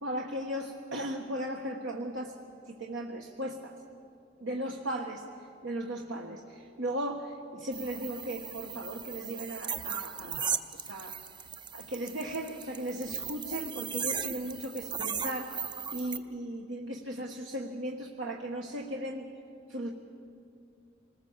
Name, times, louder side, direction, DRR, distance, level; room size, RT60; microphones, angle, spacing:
voice 1, 0.0-2.3 2.7-3.7 4.4-11.2 11.7-15.6 15.9-19.3 19.7-19.9, right 1 dB, 70° right, 0 dB, 1.4 m, -37 dB
sound 1, 7.7-16.2, right 7 dB, 25° right, 0.7 m, -37 dB
26.5 x 20.0 x 7.3 m, 2.5 s
head